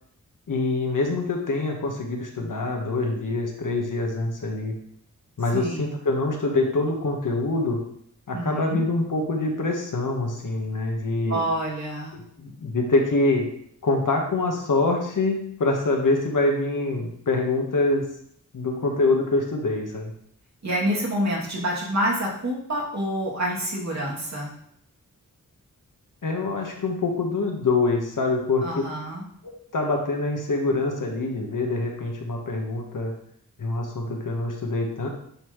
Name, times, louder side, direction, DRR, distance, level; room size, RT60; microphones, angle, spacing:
voice 1, 0.5-4.8 5.4-7.8 8.3-11.4 12.1-13.5 13.8-18.0 18.5-20.1 26.2-28.7 29.4-33.1 33.6-35.1, left 2 dB, 70° left, 1 dB, 1.3 m, -25 dB
voice 2, 5.5-5.9 8.3-8.9 11.3-12.2 20.6-24.5 28.6-29.2, right 1 dB, 55° right, -5 dB, 2.5 m, -27 dB
9.9 x 4.2 x 3.1 m, 0.68 s
wide cardioid pair, 95°, 33 cm